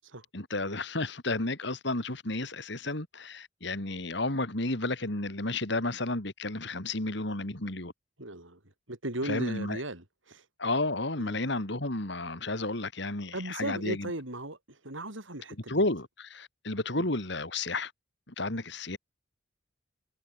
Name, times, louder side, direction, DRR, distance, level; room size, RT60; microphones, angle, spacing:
voice 1, 0.3-7.9 9.2-9.8 10.6-14.1 15.7-17.9 18.3-19.0, left 2 dB, 60° left, 2.9 m, -32 dB
voice 2, 8.2-8.6 8.9-10.4 11.2-11.4 13.3-15.8 17.0-17.1, right 1 dB, 75° right, 6.7 m, -37 dB
head